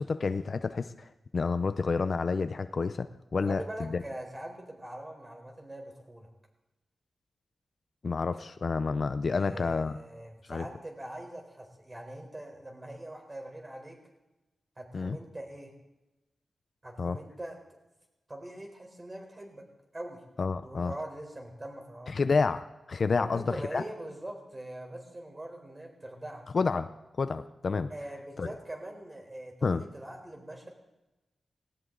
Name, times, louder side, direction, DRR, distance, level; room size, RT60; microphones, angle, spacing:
voice 1, 0.0-4.0 8.0-10.0 10.5-10.7 14.9-15.2 17.0-17.2 20.4-20.9 22.1-23.8 26.5-26.9 27.2-27.9 28.4-28.5 29.6-29.8, left 4 dB, 50° left, 11 dB, 0.6 m, -29 dB
voice 2, 3.3-6.3 9.3-14.0 14.8-15.7 16.8-17.6 18.3-19.6 19.9-20.2 20.6-22.1 23.1-26.4 27.9-30.7, right 1 dB, 20° right, 2 dB, 4.1 m, -42 dB
18.5 x 18.5 x 3.9 m, 1.0 s
wide cardioid pair, 115°, 0 cm